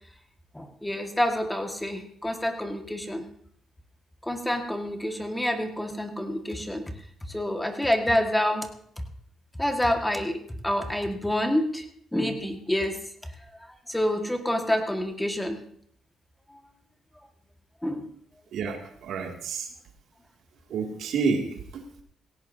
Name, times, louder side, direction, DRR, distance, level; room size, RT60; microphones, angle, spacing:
voice 1, 0.5-3.2 4.2-6.8 7.3-8.7 9.6-10.4 10.6-11.8 12.1-13.0 13.9-15.6 17.8-18.1, left 1 dB, 5° left, 4 dB, 1.7 m, -27 dB
voice 2, 18.5-19.7 20.7-21.5 21.7-21.8, right 5 dB, 75° right, 2 dB, 2.4 m, -29 dB
17.0 x 17.0 x 2.7 m, 0.65 s
cardioid pair, 90°, 0 cm